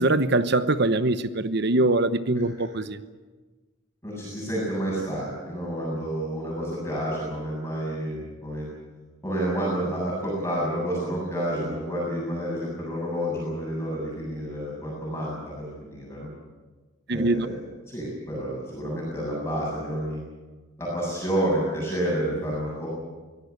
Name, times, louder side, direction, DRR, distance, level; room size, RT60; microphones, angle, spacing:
voice 1, 0.0-3.0 17.1-17.5, right 2 dB, 50° right, 0.9 m, -23 dB
voice 2, 4.0-8.7 9.2-16.3 17.1-17.6 17.9-20.2 20.8-22.9, right 1 dB, 10° left, 7.6 m, -29 dB
23.5 x 17.0 x 8.3 m
head